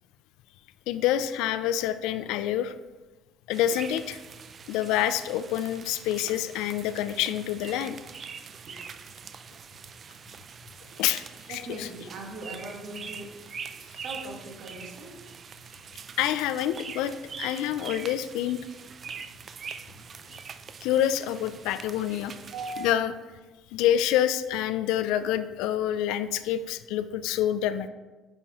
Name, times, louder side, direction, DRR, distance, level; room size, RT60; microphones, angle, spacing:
voice 1, 0.9-2.7 3.5-4.2 4.7-8.0 11.0-11.9 16.2-18.6 20.8-22.3 22.8-23.1 23.7-27.9, left 11 dB, 85° left, 12 dB, 0.3 m, -27 dB
sound 1, 3.5-22.9, right 6 dB, 35° right, 0.4 m, -43 dB
voice 2, 11.5-13.5 14.0-15.2 17.7-17.8 22.5-22.9, right 2 dB, 60° right, 0 dB, 1.7 m, -40 dB
9.0 x 5.5 x 3.0 m, 1.2 s
cardioid pair, 125°, 0 cm